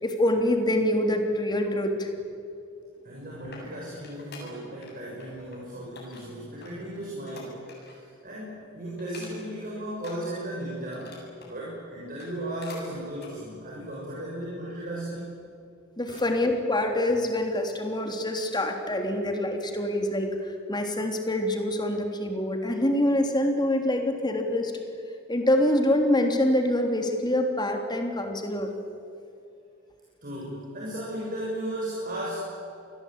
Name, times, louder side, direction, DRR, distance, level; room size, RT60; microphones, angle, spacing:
voice 1, 0.0-2.1 3.4-3.5 16.0-24.7 25.3-28.8, left 1 dB, 20° left, 4 dB, 3.4 m, -25 dB
sound 1, 3.0-4.9 5.2-5.6 6.0-8.1 8.4-8.6 9.0-9.6 10.0-11.6 12.0-12.9 13.2-13.3 13.9-14.0, left 3 dB, 55° left, 7.9 m, -47 dB
voice 2, 3.0-15.4 16.1-16.2 30.2-32.6, right 1 dB, 45° right, -5 dB, 7.0 m, -36 dB
28.0 x 21.0 x 9.0 m, 2.5 s
head